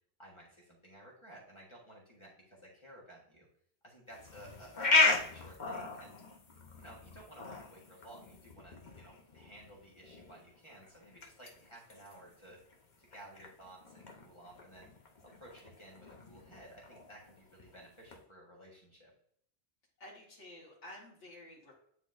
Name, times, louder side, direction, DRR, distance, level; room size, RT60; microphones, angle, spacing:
voice 1, 0.2-3.5 3.8-6.2 6.8-12.6 13.0-14.9 15.4-19.1, right 1 dB, 25° left, -4 dB, 1.5 m, -55 dB
sound 1, 4.1-18.2, left 3 dB, 45° left, 0.9 m, -37 dB
voice 2, 20.0-21.7, left 1 dB, 85° left, -3 dB, 1.9 m, -51 dB
9.5 x 4.0 x 2.6 m, 0.67 s
omnidirectional pair, 1.2 m